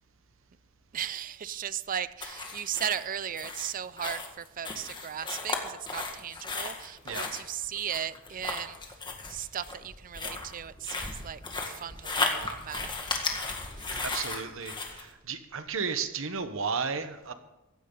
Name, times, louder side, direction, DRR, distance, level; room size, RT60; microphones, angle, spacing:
voice 1, 0.9-9.0 9.3-14.1, right 9 dB, 40° right, 16 dB, 0.5 m, -37 dB
Walking through woods, 2.2-15.0, left 3 dB, 20° left, 1.8 m, -35 dB
voice 2, 14.0-17.3, right 5 dB, 70° right, 9 dB, 1.1 m, -33 dB
16.0 x 13.5 x 3.9 m, 0.99 s
head